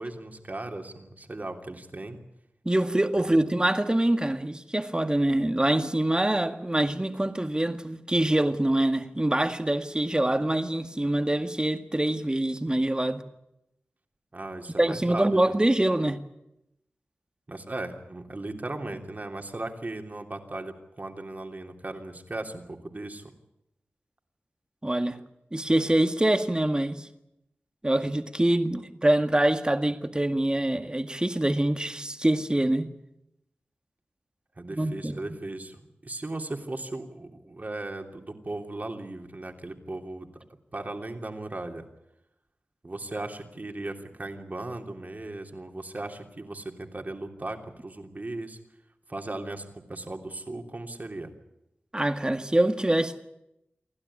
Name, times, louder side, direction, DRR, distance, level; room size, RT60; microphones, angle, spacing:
voice 1, 0.0-2.2 14.3-15.4 17.5-23.3 34.6-40.3 40.7-41.9 42.8-48.6 49.1-51.3, right 2 dB, 45° right, 3.1 m, -37 dB
voice 2, 2.7-13.2 14.8-16.2 24.8-25.2 25.5-27.1 27.8-32.9 34.7-35.2 51.9-53.2, right 1 dB, 20° right, 1.9 m, -25 dB
28.0 x 12.0 x 10.0 m
cardioid pair, 45°, 4 cm